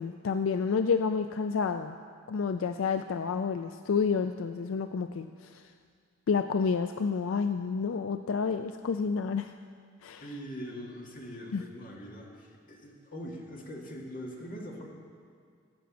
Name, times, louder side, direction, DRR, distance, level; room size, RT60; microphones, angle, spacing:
voice 1, 0.0-2.0 2.3-5.6 6.3-9.5 10.0-10.2 11.5-11.6, left 5 dB, 75° left, 9 dB, 0.4 m, -29 dB
voice 2, 10.2-14.9, equal, 40° left, -1 dB, 2.0 m, -42 dB
16.0 x 6.1 x 8.5 m, 2.2 s
head